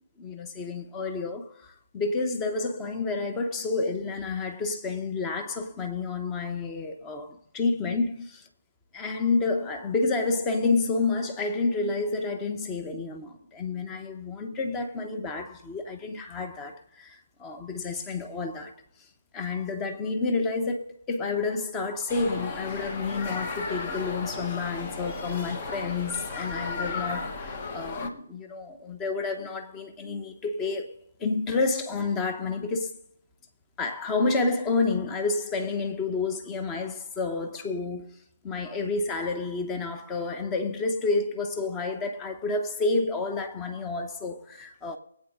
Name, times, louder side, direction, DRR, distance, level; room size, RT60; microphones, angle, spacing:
voice 1, 0.2-8.5 8.9-18.8 19.3-30.9 31.2-33.0 33.8-45.0, left 3 dB, 15° left, 1.1 m, -29 dB
sound 1, 22.1-28.1, left 3 dB, 30° left, 1.3 m, -34 dB
22.5 x 8.7 x 3.8 m
figure-of-eight pair, 150°, 0 cm